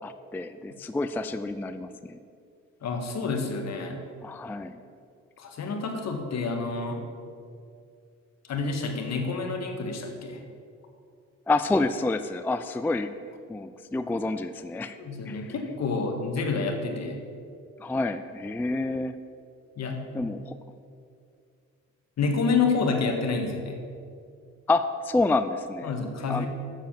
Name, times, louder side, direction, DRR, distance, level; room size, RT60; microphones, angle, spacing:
voice 1, 0.0-2.2 4.2-4.8 11.5-13.1 13.5-15.0 15.3-15.4 17.8-19.2 20.1-20.5 24.7-25.9 26.3-26.5, left 2 dB, 5° left, 10 dB, 0.3 m, -28 dB
voice 2, 2.8-4.0 5.4-7.0 8.4-10.4 15.0-17.2 19.8-20.3 22.2-23.8 25.8-26.5, left 4 dB, 60° left, 3 dB, 1.6 m, -28 dB
7.5 x 7.1 x 7.3 m, 2.3 s
cardioid pair, 90°, 30 cm